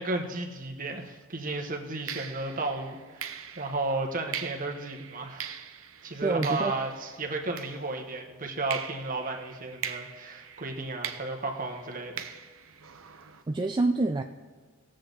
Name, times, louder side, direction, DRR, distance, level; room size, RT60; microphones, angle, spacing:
voice 1, 0.0-5.5 6.0-12.3, right 2 dB, 40° right, 3 dB, 1.2 m, -33 dB
sound 1, 0.9-1.1 2.1-8.2 8.7-13.4, right 8 dB, 70° right, 0.8 m, -41 dB
voice 2, 6.2-6.7 13.5-14.2, right 2 dB, 20° right, 4 dB, 0.4 m, -26 dB
19.0 x 7.6 x 3.9 m, 1.5 s
head